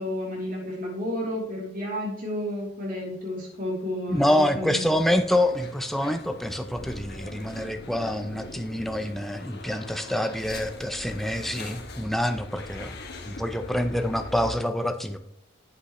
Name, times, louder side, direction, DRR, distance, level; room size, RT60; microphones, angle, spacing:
voice 1, 0.0-4.9, left 1 dB, 40° right, -3 dB, 3.0 m, -31 dB
voice 2, 4.1-13.0 13.3-15.2, left 1 dB, ahead, 7 dB, 0.5 m, -26 dB
sound 1, 4.8-14.6, left 2 dB, 55° left, 1.1 m, -41 dB
8.4 x 7.8 x 3.1 m, 0.73 s
head